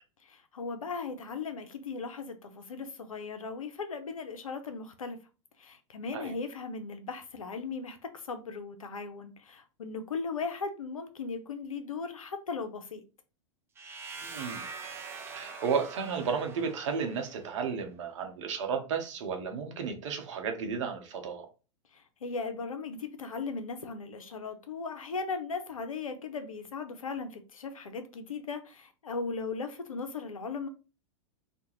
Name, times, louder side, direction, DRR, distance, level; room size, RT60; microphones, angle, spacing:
voice 1, 0.2-5.2 5.6-13.0 21.9-30.7, left 4 dB, 85° left, 0.5 m, -37 dB
sound 1, 13.8-17.6, right 4 dB, 15° right, 0.4 m, -44 dB
voice 2, 14.2-14.6 15.3-21.5, right 6 dB, 65° right, 0.7 m, -33 dB
2.4 x 2.1 x 2.9 m
hypercardioid pair, 100°, 17 cm